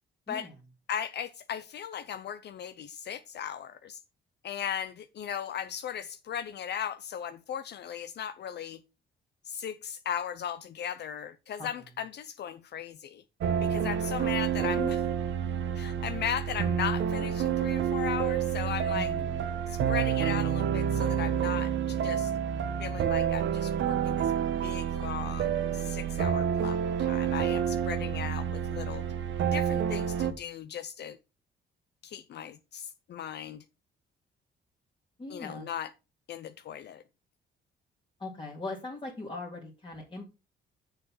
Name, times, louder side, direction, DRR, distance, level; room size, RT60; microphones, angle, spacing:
voice 1, 0.9-4.0 4.4-8.8 9.4-13.2 13.6-15.1 15.7-19.1 19.7-22.3 22.8-24.3 24.6-29.0 29.5-31.2 32.0-33.6 35.3-35.9 36.3-37.0, left 9 dB, 60° left, 0.6 m, -37 dB
sound 1, 13.4-30.3, right 8 dB, 70° right, 1.1 m, -29 dB
voice 2, 18.9-19.5 35.2-35.7 38.2-40.2, left 2 dB, 25° left, 2.1 m, -40 dB
6.8 x 5.6 x 5.6 m
cardioid pair, 90°, 20 cm